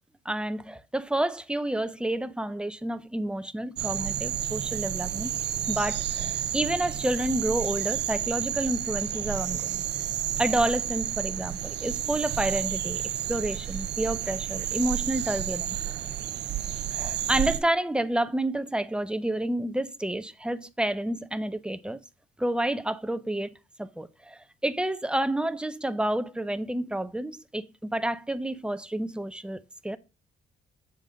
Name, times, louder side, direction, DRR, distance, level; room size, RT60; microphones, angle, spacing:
voice 1, 0.3-5.3 5.7-9.8 10.4-13.0 13.3-15.8 16.9-22.0 22.4-23.5 23.8-30.0, right 1 dB, 5° right, 0.5 m, -29 dB
sound 1, 3.8-17.6, right 11 dB, 60° right, 0.5 m, -31 dB
7.1 x 3.9 x 5.0 m
cardioid pair, 90°, 20 cm